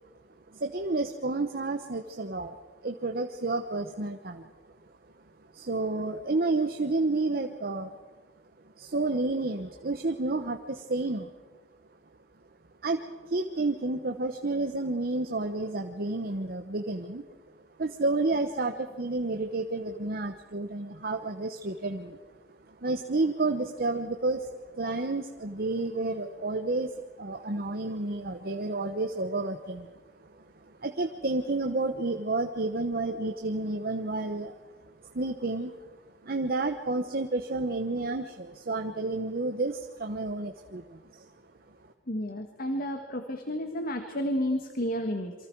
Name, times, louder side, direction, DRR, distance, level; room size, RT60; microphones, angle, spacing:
voice 1, 0.5-2.6 2.8-4.4 5.5-8.0 8.8-11.3 12.8-13.0 13.3-17.2 17.8-22.2 22.7-34.6 35.0-36.0 36.2-41.3, right 2 dB, 55° right, 6 dB, 1.0 m, -30 dB
voice 2, 42.1-45.3, equal, 55° left, 6 dB, 1.5 m, -31 dB
27.5 x 24.0 x 4.7 m, 1.3 s
head